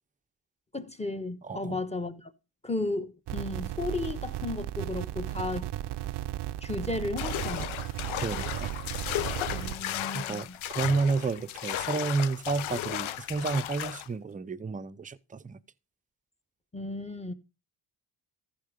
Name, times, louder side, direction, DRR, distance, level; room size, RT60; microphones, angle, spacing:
voice 1, 0.7-2.3 2.6-5.7 6.6-7.7 9.5-10.6 16.7-17.3, left 2 dB, 15° left, 1.1 m, -34 dB
voice 2, 1.4-1.8 8.2-8.7 10.1-15.6, right 4 dB, 15° right, 0.6 m, -31 dB
sound 1, 3.3-9.8, right 13 dB, 60° right, 0.6 m, -35 dB
sound 2, 7.2-14.1, left 13 dB, 80° left, 0.8 m, -35 dB
14.5 x 5.1 x 5.0 m
cardioid pair, 95°, 47 cm